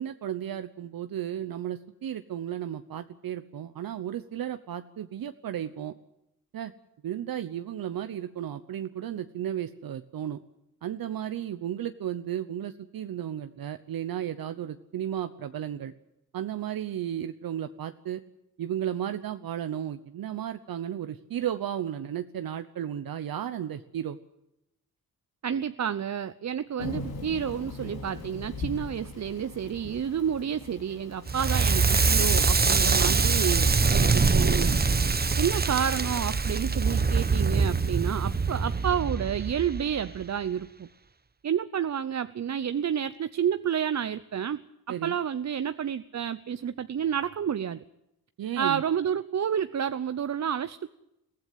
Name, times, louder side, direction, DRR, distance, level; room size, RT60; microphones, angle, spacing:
voice 1, 0.0-5.9 6.5-6.7 7.0-10.4 10.8-15.9 16.3-18.2 18.6-24.2 32.7-33.2 44.9-45.2 48.4-48.8, right 10 dB, 75° right, 10 dB, 1.0 m, -34 dB
voice 2, 25.4-34.8 35.4-40.9 41.4-44.6 45.0-47.8 48.6-50.9, right 8 dB, 50° right, 12 dB, 0.8 m, -30 dB
Thunder / Rain, 26.8-36.4, left 3 dB, 80° left, 4.0 m, -42 dB
Crackle, 31.3-40.2, right 4 dB, 25° right, 1.1 m, -24 dB
22.5 x 15.5 x 9.4 m, 0.86 s
cardioid pair, 95°, 35 cm